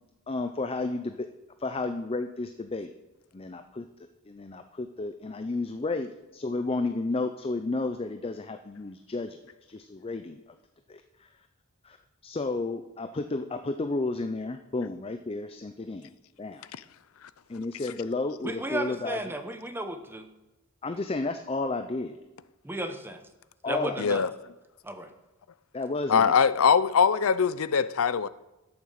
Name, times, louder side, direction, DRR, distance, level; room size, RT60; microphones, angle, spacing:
voice 1, 0.3-1.3 1.6-2.9 3.3-3.9 4.3-6.1 6.3-9.4 9.7-10.5 10.9-11.3 11.8-12.0 12.2-16.1 16.4-16.7 17.5-19.3 20.8-22.2 23.6-24.0 25.7-26.4, left 3 dB, 30° left, 0.5 m, -32 dB
voice 2, 18.4-20.3 22.6-23.2 23.7-24.2 24.8-25.1, right 1 dB, 10° right, 0.9 m, -34 dB
voice 3, 24.0-24.3 26.1-28.3, left 6 dB, 90° left, 0.5 m, -22 dB
12.0 x 7.2 x 6.5 m
head